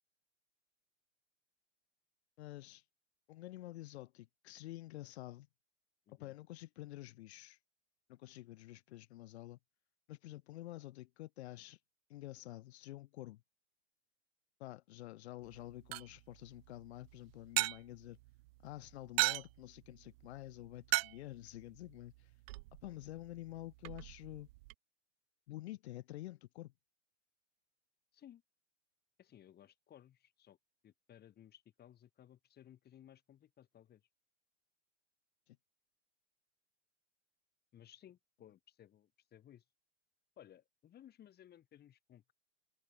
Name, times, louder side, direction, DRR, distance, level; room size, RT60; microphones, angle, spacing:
voice 1, 2.4-2.8 3.3-5.5 6.2-7.6 8.1-9.6 10.1-11.8 12.1-13.4 14.6-18.2 18.6-22.3 22.8-24.5 25.5-26.7 35.5-35.6, left 16 dB, 60° left, 3.7 m, -49 dB
sound 1, 15.4-24.7, right 22 dB, 55° right, 1.3 m, -41 dB
voice 2, 29.2-30.6 30.8-34.0 37.7-39.6 40.4-42.3, left 11 dB, 25° left, 3.7 m, -60 dB
hypercardioid pair, 115°, 36 cm